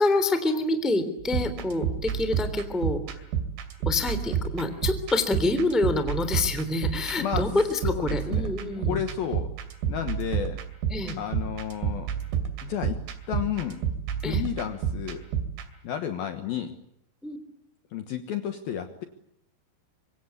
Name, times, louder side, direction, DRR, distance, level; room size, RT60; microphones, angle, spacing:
voice 1, 0.0-3.2 3.8-9.0 10.9-11.2 14.2-14.4 17.2-17.4, left 2 dB, ahead, 10 dB, 1.9 m, -27 dB
sound 1, 1.2-15.7, right 8 dB, 75° right, 4.9 m, -31 dB
voice 2, 7.2-7.5 7.8-8.5 8.8-9.5 9.9-10.6 11.2-12.1 12.6-13.0 13.3-13.8 14.2-15.2 15.8-16.7 17.9-19.0, left 9 dB, 65° left, 8 dB, 2.5 m, -31 dB
25.5 x 24.5 x 8.4 m, 0.72 s
omnidirectional pair, 5.6 m